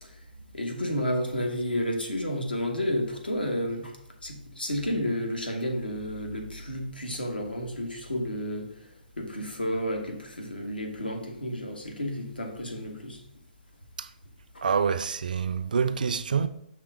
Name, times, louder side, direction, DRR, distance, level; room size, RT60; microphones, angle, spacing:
voice 1, 0.5-4.0 4.2-8.7 9.2-13.2 14.5-14.6, equal, 85° left, 1.3 m, -31 dB
voice 2, 14.6-16.5, right 6 dB, 65° right, 0.4 m, -26 dB
5.8 x 3.5 x 4.8 m
figure-of-eight pair, 130°, 5 cm